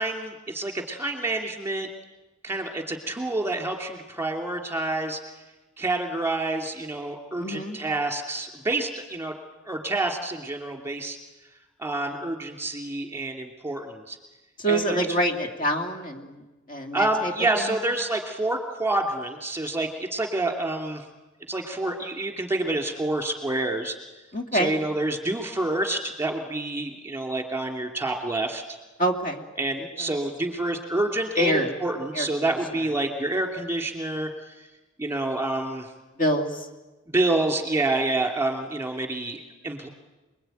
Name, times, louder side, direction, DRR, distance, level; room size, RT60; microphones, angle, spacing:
voice 1, 0.0-1.9 2.4-5.2 5.8-9.3 9.6-11.2 11.8-14.2 14.7-15.1 16.9-21.0 21.5-24.0 24.5-28.6 29.6-34.3 35.0-35.9 37.1-39.9, right 2 dB, 10° right, 4 dB, 2.7 m, -28 dB
voice 2, 7.4-7.8 14.6-17.8 24.3-24.7 29.0-29.4 29.8-30.1 31.4-31.7 32.1-32.3 36.2-36.7, equal, 40° left, 3 dB, 2.6 m, -26 dB
28.5 x 21.5 x 9.2 m, 1.1 s
head